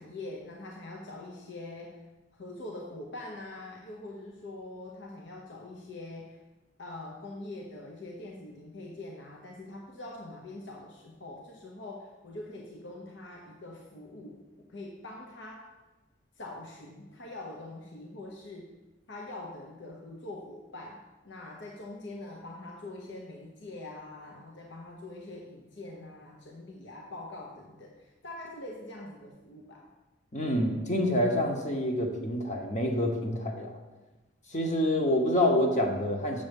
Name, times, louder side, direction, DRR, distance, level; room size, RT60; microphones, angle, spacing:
voice 1, 0.0-2.0 2.3-6.4 6.8-15.7 16.3-18.7 19.1-29.9, left 2 dB, 65° left, -1 dB, 0.9 m, -44 dB
voice 2, 30.3-33.8 34.5-36.4, left 1 dB, 40° left, 2 dB, 1.1 m, -27 dB
7.0 x 6.9 x 5.3 m, 1.1 s
head